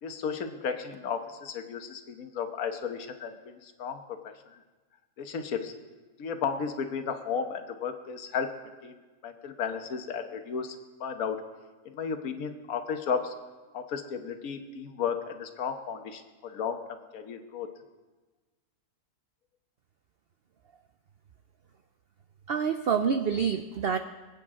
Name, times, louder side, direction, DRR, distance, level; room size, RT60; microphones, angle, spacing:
voice 1, 0.0-4.6 5.2-5.7 6.2-8.5 8.8-9.0 9.2-11.4 11.8-13.3 13.7-17.7, left 6 dB, 65° left, 6 dB, 1.4 m, -34 dB
voice 2, 22.5-24.0, right 6 dB, 80° right, 8 dB, 0.5 m, -27 dB
26.0 x 8.6 x 3.7 m, 1.2 s
omnidirectional pair, 1.7 m